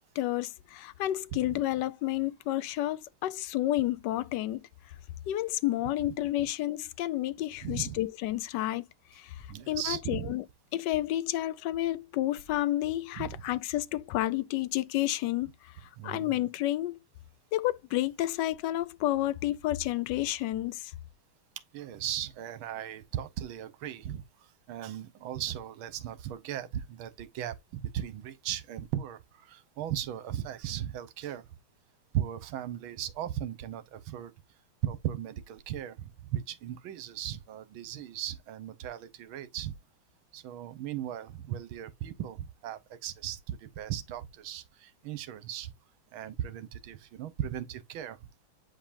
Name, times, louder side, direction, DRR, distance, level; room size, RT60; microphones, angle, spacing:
voice 1, 0.2-4.6 5.3-8.8 9.1-10.4 10.7-15.7 16.0-17.0 17.5-20.9, left 15 dB, 75° left, 1.0 m, -30 dB
voice 2, 1.3-1.6 7.6-8.0 9.5-10.3 13.2-13.4 16.0-16.3 21.7-31.5 32.1-34.3 34.8-39.7 40.3-45.7 46.1-48.2, right 11 dB, 75° right, 1.7 m, -37 dB
8.8 x 5.2 x 2.6 m
omnidirectional pair, 2.3 m